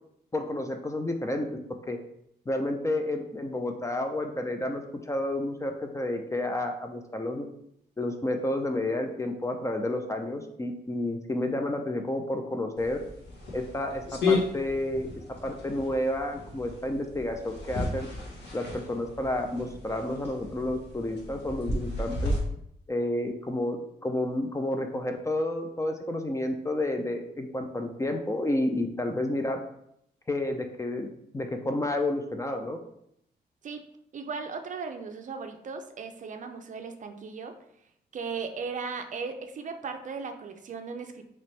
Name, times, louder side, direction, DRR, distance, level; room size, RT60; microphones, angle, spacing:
voice 1, 0.3-1.5 1.9-2.0 2.5-4.8 5.1-7.5 8.0-13.0 13.5-18.1 18.5-22.3 22.9-23.8 24.0-29.6 30.3-31.1 31.3-32.8, left 1 dB, 15° left, 4 dB, 0.4 m, -30 dB
sound 1, 12.8-22.4, left 2 dB, 85° left, 1.3 m, -34 dB
voice 2, 34.1-37.5 38.1-41.3, right 5 dB, 45° right, 6 dB, 0.5 m, -37 dB
4.3 x 3.0 x 3.2 m, 0.74 s
wide cardioid pair, 130°, 18 cm